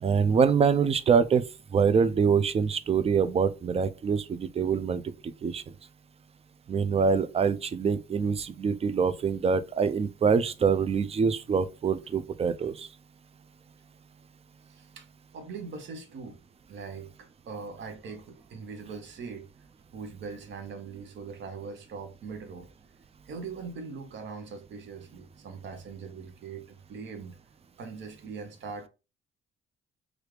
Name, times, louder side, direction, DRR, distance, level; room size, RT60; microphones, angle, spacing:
voice 1, 0.0-1.4 1.7-5.0 5.4-5.6 6.7-12.9, right 6 dB, 30° right, 0.4 m, -25 dB
voice 2, 14.7-15.1 15.3-16.4 16.7-19.5 19.9-22.7 23.3-27.4 27.8-28.9, right 5 dB, 65° right, 0.8 m, -41 dB
3.2 x 2.4 x 3.1 m
cardioid pair, 90°, 20 cm